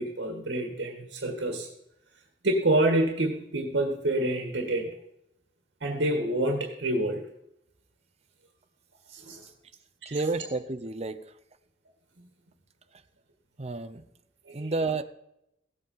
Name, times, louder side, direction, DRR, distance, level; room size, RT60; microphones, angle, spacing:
voice 1, 0.0-1.7 2.4-5.0 5.8-7.2 9.1-9.4 10.1-10.2 14.5-14.7, right 1 dB, 80° right, 3 dB, 1.8 m, -27 dB
voice 2, 10.1-11.2 13.6-14.1 14.5-15.0, right 3 dB, 35° right, 11 dB, 0.8 m, -30 dB
16.5 x 8.2 x 5.6 m, 0.81 s
head